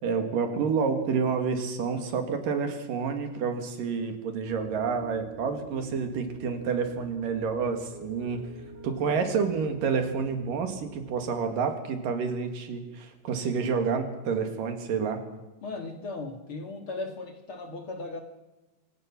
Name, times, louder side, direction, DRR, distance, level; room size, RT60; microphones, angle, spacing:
voice 1, 0.0-8.4 8.8-15.2, right 5 dB, 75° right, 6 dB, 3.7 m, -29 dB
Piano, 4.5-11.4, right 3 dB, 20° right, 2.2 m, -47 dB
voice 2, 15.6-18.2, left 3 dB, 45° left, 5 dB, 2.3 m, -37 dB
25.5 x 17.0 x 6.0 m, 1.1 s
omnidirectional pair, 3.9 m